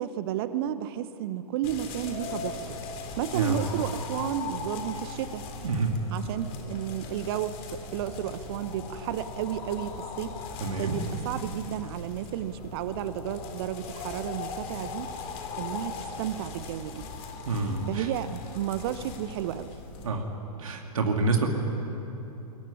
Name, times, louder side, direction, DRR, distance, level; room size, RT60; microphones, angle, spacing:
voice 1, 0.0-2.8 3.2-5.4 6.1-10.3 10.8-15.1 15.6-17.0 17.9-19.7 20.6-20.7, right 11 dB, 40° right, 13 dB, 1.0 m, -32 dB
sound 1, 1.6-20.1, left 4 dB, 30° left, 3.2 m, -39 dB
voice 2, 10.6-11.0 17.5-18.1 20.0-20.2 20.6-21.5, right 3 dB, 60° right, 2 dB, 2.8 m, -27 dB
23.0 x 19.5 x 9.7 m, 3.0 s
figure-of-eight pair, 110°, 19 cm